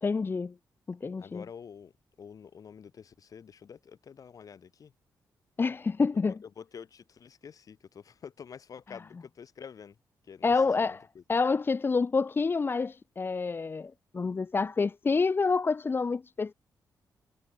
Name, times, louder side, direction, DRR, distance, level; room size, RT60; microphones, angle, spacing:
voice 1, 0.0-0.5 0.9-1.4 5.6-6.3 10.4-16.5, left 4 dB, 30° left, 0.8 m, -28 dB
voice 2, 1.2-1.9 2.2-4.9 6.3-10.0 10.2-11.2, left 7 dB, 60° left, 7.1 m, -48 dB
cardioid pair, 95°, 7 cm